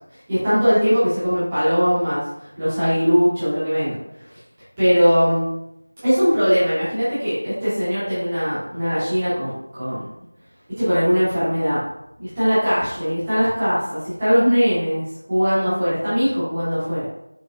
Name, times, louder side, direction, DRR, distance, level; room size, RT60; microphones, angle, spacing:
voice 1, 0.3-3.9 4.8-5.4 6.0-10.1 10.7-11.8 12.2-17.1, equal, 5° right, -16 dB, 0.9 m, -20 dB
4.1 x 3.5 x 2.7 m, 0.84 s
figure-of-eight pair, 180°, 0 cm